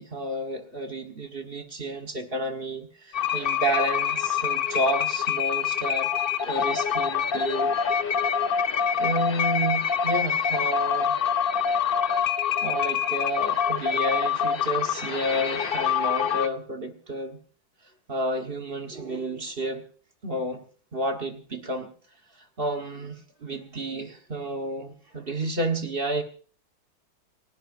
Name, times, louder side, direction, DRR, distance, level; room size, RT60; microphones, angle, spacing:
voice 1, 0.0-6.1 6.4-7.7 9.0-11.1 12.6-17.4 18.1-19.8 20.2-20.6 20.9-21.9 22.6-26.2, right 1 dB, 30° right, 5 dB, 1.4 m, -30 dB
sound 1, 3.1-16.5, left 7 dB, 70° left, 0.5 m, -25 dB
29.0 x 11.5 x 2.6 m, 0.42 s
omnidirectional pair, 2.1 m